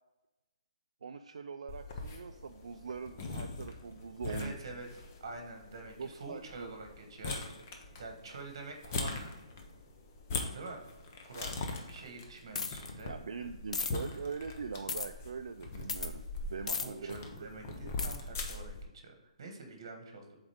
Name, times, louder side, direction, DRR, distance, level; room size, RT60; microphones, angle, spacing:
voice 1, 1.0-4.7 6.0-6.8 13.1-16.2 16.5-17.2 17.7-17.9, right 5 dB, 70° right, 6 dB, 0.3 m, -42 dB
sound 1, 1.7-18.8, left 3 dB, 20° left, 0.5 m, -42 dB
voice 2, 4.3-4.9 5.2-7.4 8.0-9.4 10.5-10.8 11.2-11.5 11.9-13.1 16.8-20.4, right 3 dB, 40° right, 3 dB, 1.3 m, -46 dB
sound 2, 12.5-12.9 13.7-13.9 14.9-15.1 15.9-16.1 16.7-16.9 18.0-18.2, left 4 dB, 80° left, 0.7 m, -34 dB
7.2 x 4.0 x 3.5 m, 1.0 s
hypercardioid pair, 180°, 4 cm